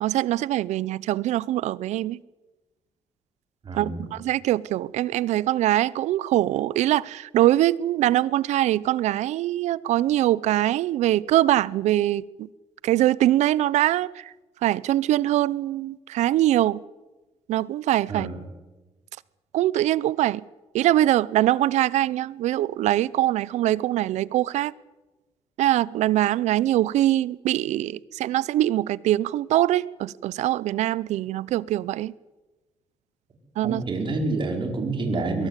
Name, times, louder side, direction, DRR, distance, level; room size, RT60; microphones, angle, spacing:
voice 1, 0.0-2.2 3.8-12.5 12.8-14.3 14.6-16.8 17.5-18.3 19.5-20.4 20.7-24.7 25.6-32.1 33.6-33.8, right 14 dB, 80° right, 0.6 m, -23 dB
voice 2, 3.6-4.1 18.1-18.5 33.6-35.5, right 3 dB, 45° right, 5.1 m, -28 dB
22.5 x 18.0 x 8.3 m
cardioid pair, 95°, 12 cm